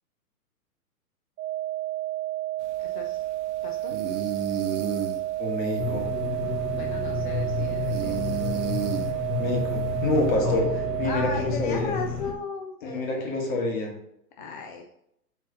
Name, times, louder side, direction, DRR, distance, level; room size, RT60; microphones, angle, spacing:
sound 1, 1.4-11.4, right 15 dB, 70° right, 0.6 m, -31 dB
sound 2, 2.6-10.4, right 7 dB, 50° right, 0.9 m, -35 dB
voice 1, 2.8-3.2 3.6-4.0 6.7-8.1 10.4-10.7 11.0-13.4 14.4-14.9, left 4 dB, 35° left, 3 dB, 0.4 m, -36 dB
voice 2, 5.4-6.1 9.4-10.6 11.0-11.9 12.8-13.9, left 2 dB, 55° left, -1 dB, 2.2 m, -27 dB
sound 3, 5.8-12.3, left 4 dB, 85° left, 1.3 m, -31 dB
6.3 x 4.1 x 3.9 m, 0.76 s
hypercardioid pair, 140°, 47 cm